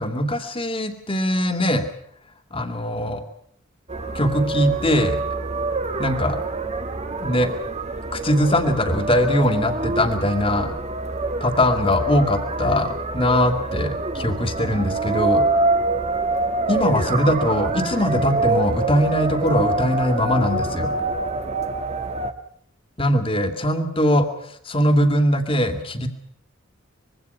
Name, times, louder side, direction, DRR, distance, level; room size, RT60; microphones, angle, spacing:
voice 1, 0.0-1.9 2.5-3.2 4.1-5.2 6.0-6.4 7.2-7.5 8.1-10.7 11.4-15.4 16.7-20.9 23.0-24.3 24.7-26.1, left 1 dB, 25° left, 8 dB, 2.7 m, -21 dB
sound 1, 3.9-22.3, right 2 dB, 30° right, 1.6 m, -26 dB
25.5 x 22.5 x 5.7 m, 0.67 s
head